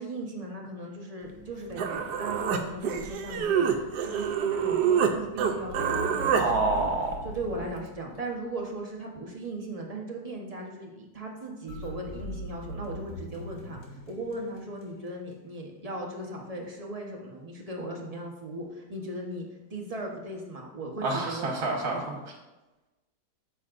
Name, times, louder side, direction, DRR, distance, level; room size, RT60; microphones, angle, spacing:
voice 1, 0.0-6.7 7.2-19.4 19.7-21.5 21.9-22.0, right 1 dB, 25° right, -1 dB, 0.9 m, -38 dB
Human voice, 1.4-1.5 1.8-5.1 5.4-6.5, right 7 dB, 80° right, 1.3 m, -26 dB
sound 1, 5.7-8.7 11.7-15.1, equal, 70° left, 1.7 m, -41 dB
voice 2, 6.3-7.2 21.0-22.2, right 3 dB, 55° right, 0 dB, 1.7 m, -28 dB
8.2 x 6.8 x 2.5 m, 1.1 s
omnidirectional pair, 1.8 m